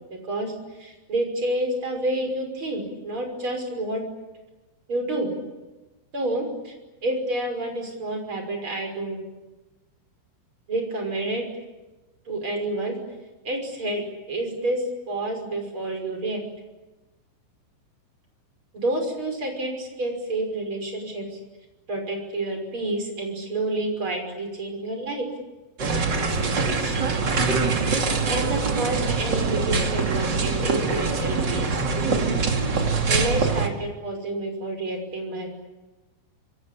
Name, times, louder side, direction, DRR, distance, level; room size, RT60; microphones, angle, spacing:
voice 1, 0.8-4.0 4.9-5.3 6.1-6.7 7.0-9.2 10.7-11.4 12.3-13.0 13.4-14.0 14.3-16.4 18.7-21.2 21.9-25.3 26.8-27.0 28.3-32.2 32.8-35.5, right 1 dB, 25° right, 3 dB, 6.2 m, -29 dB
sound 1, 25.8-33.7, right 4 dB, 45° right, 1.4 m, -24 dB
27.0 x 26.0 x 8.6 m, 1.1 s
omnidirectional pair, 5.8 m